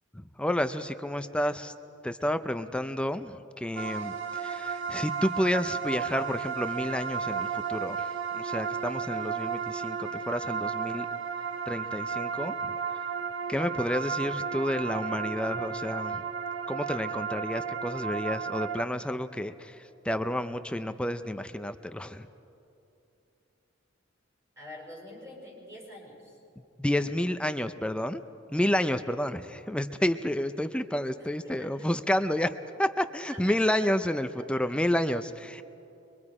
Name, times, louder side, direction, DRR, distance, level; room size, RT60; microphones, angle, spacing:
voice 1, 0.1-1.7 2.0-11.1 11.7-12.7 13.5-16.2 16.7-22.3 26.8-28.2 28.5-32.5 32.8-35.6, left 1 dB, 5° left, 10 dB, 0.4 m, -30 dB
sound 1, 3.8-18.8, right 6 dB, 70° right, 1.1 m, -33 dB
voice 2, 24.6-26.4 31.2-32.2 33.3-33.7 34.4-34.7, left 1 dB, 15° right, -4 dB, 6.3 m, -47 dB
24.0 x 23.0 x 4.9 m, 2.8 s
head